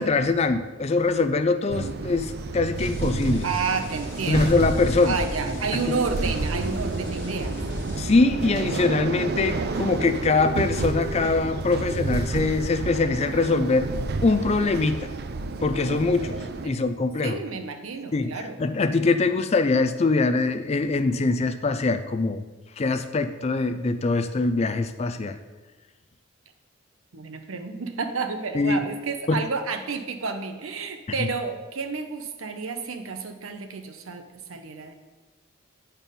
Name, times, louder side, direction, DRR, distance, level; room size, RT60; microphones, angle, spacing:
voice 1, 0.0-3.5 4.3-5.2 8.0-13.9 14.2-15.1 15.6-17.4 18.1-22.4 22.8-25.4 28.5-28.8 29.3-29.4 31.2-31.3, left 3 dB, 30° left, 10 dB, 0.4 m, -23 dB
sound 1, 1.7-16.7, right 3 dB, 50° right, 0.4 m, -30 dB
sound 2, 2.8-8.0, left 1 dB, 55° left, 1.5 m, -37 dB
voice 2, 3.4-4.6 5.0-7.6 16.6-16.8 17.2-18.6 27.1-34.9, right 4 dB, 80° right, 6 dB, 0.8 m, -30 dB
9.0 x 4.4 x 5.2 m, 1.2 s
head